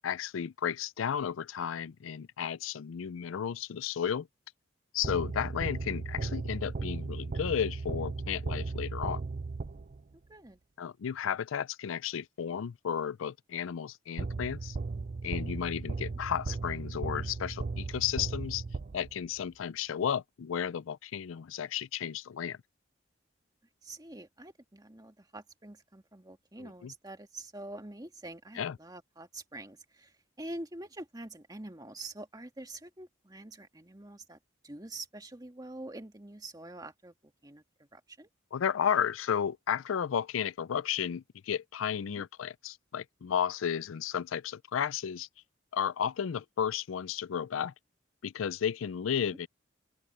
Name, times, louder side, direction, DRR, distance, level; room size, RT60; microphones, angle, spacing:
voice 1, 0.0-4.3 4.9-9.2 10.8-14.8 15.2-18.6 18.9-22.6 26.6-26.9 28.6-28.8 38.5-45.3 45.7-47.7 48.2-49.5, left 8 dB, 90° left, 0.4 m, -33 dB
sound 1, 5.0-10.1 14.2-19.4, right 3 dB, 40° right, 0.5 m, -36 dB
voice 2, 23.8-34.4 34.6-38.3 42.1-42.3, right 2 dB, 20° right, 1.9 m, -46 dB
open air
head